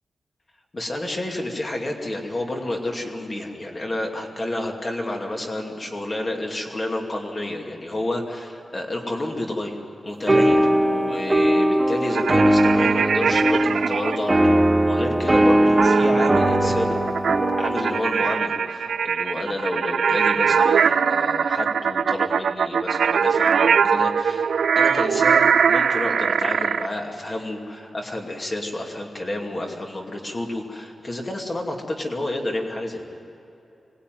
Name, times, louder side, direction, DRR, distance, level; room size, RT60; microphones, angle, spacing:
voice 1, 0.7-9.8 10.0-17.0 17.6-33.0, left 1 dB, 30° left, 1 dB, 2.5 m, -30 dB
sound 1, 10.3-18.1, right 1 dB, 15° right, 2.1 m, -19 dB
sound 2, 12.1-14.2 15.8-26.9, right 6 dB, 85° right, 0.4 m, -21 dB
25.0 x 19.0 x 9.3 m, 2.8 s
wide cardioid pair, 155°, 0 cm